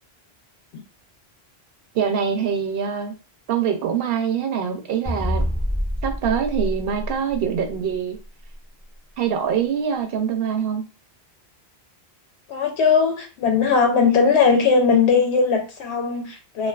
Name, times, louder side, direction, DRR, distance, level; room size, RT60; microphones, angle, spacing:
voice 1, 1.9-3.1 3.5-5.5 6.0-8.2 9.2-10.9, right 7 dB, 65° right, 0.8 m, -24 dB
sound 1, 5.1-7.8, equal, 20° left, 0.5 m, -26 dB
voice 2, 12.5-16.7, left 5 dB, 85° left, 0.9 m, -19 dB
2.4 x 2.4 x 2.3 m
omnidirectional pair, 1.1 m